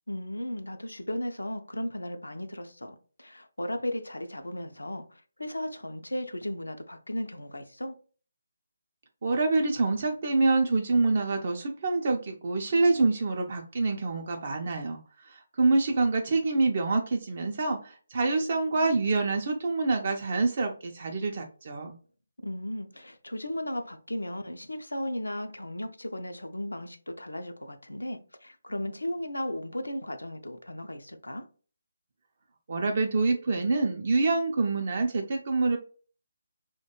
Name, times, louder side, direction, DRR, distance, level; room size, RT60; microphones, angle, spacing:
voice 1, 0.1-8.0 22.4-31.4, left 1 dB, 90° left, 0.4 m, -35 dB
voice 2, 9.2-21.9 32.7-35.8, right 3 dB, 50° right, 0.4 m, -26 dB
2.3 x 2.1 x 2.8 m
figure-of-eight pair, 150°, 0 cm